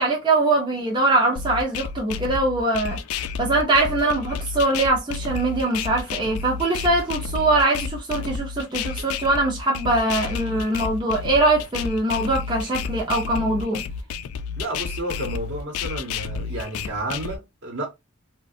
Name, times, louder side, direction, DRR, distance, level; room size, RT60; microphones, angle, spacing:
voice 1, 0.0-3.0 3.4-13.8, right 2 dB, 20° right, 0.5 m, -22 dB
sound 1, 1.4-17.4, left 5 dB, 85° left, 0.3 m, -31 dB
voice 2, 14.6-17.9, right 1 dB, 60° right, 0.9 m, -31 dB
2.4 x 2.2 x 2.6 m
head